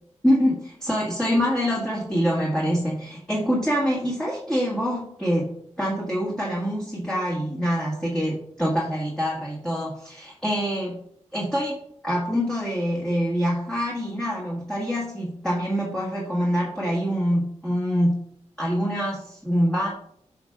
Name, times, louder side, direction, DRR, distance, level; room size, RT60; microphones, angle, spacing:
voice 1, 0.2-5.5 5.8-11.0 11.3-11.8 12.0-18.2 18.6-19.9, equal, 5° left, -6 dB, 1.6 m, -25 dB
9.3 x 5.8 x 2.4 m, 0.71 s
cardioid pair, 75°, 12 cm